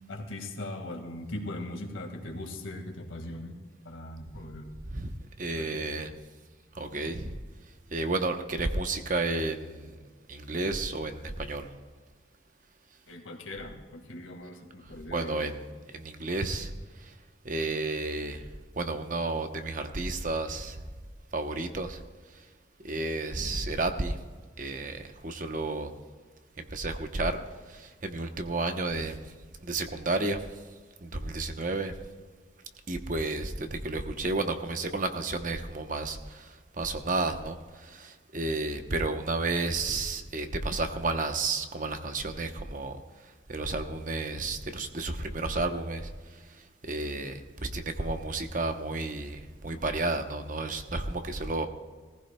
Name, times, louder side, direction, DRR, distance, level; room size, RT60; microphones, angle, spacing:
voice 1, 0.1-3.6 3.8-4.8 5.6-6.0 13.1-15.5, left 1 dB, 90° left, 4 dB, 1.9 m, -40 dB
voice 2, 4.8-6.1 6.7-7.4 7.7-10.0 10.3-11.7 14.8-17.2 17.4-20.8 21.3-22.5 22.8-24.2 24.6-25.9 26.6-29.3 29.6-31.9 32.9-51.7, right 2 dB, 40° right, 7 dB, 0.9 m, -32 dB
19.0 x 15.0 x 2.3 m, 1.5 s
head